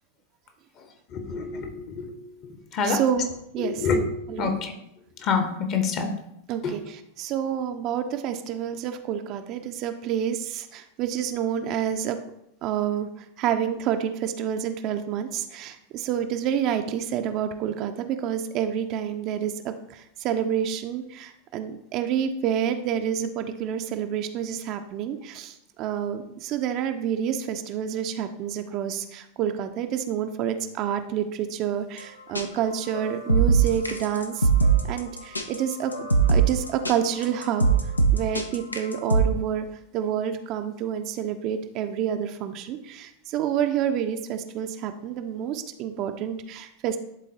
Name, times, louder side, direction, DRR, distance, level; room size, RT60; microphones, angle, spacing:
voice 1, 1.1-2.1 2.7-3.0 3.8-4.0 4.3-4.7 5.2-6.1 6.6-6.8, left 5 dB, 35° left, 0.9 m, -26 dB
voice 2, 2.8-3.9 4.3-4.5 6.5-12.2 12.6-34.5 34.9-37.7 38.1-39.7 39.9-47.0, right 9 dB, 40° right, 0.5 m, -28 dB
Beat Track, 32.0-32.1 32.4-32.5 32.9-39.3, right 5 dB, 85° left, 0.6 m, -21 dB
11.5 x 3.8 x 2.8 m
figure-of-eight pair, 90°, 0 cm